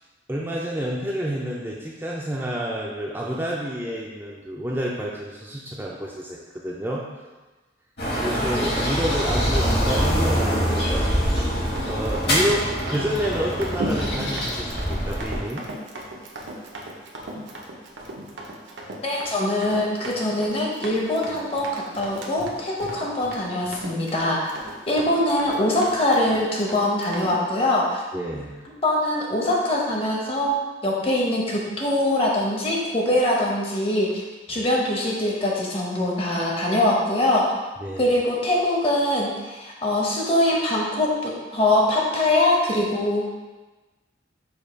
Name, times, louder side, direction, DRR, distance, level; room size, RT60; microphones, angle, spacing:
voice 1, 0.3-7.0 8.2-11.1 11.8-15.6 28.1-28.6 37.8-38.1, right 1 dB, 10° right, -4 dB, 0.4 m, -29 dB
sound 1, 8.0-15.4, equal, 60° left, 1.4 m, -24 dB
Run, 11.3-27.4, right 1 dB, 85° right, 0.7 m, -36 dB
voice 2, 19.0-24.4 24.9-28.0 28.8-30.5 30.8-34.2 34.5-37.4 38.0-43.2, left 1 dB, 30° left, -2 dB, 0.7 m, -23 dB
5.2 x 2.3 x 4.4 m, 1.2 s
head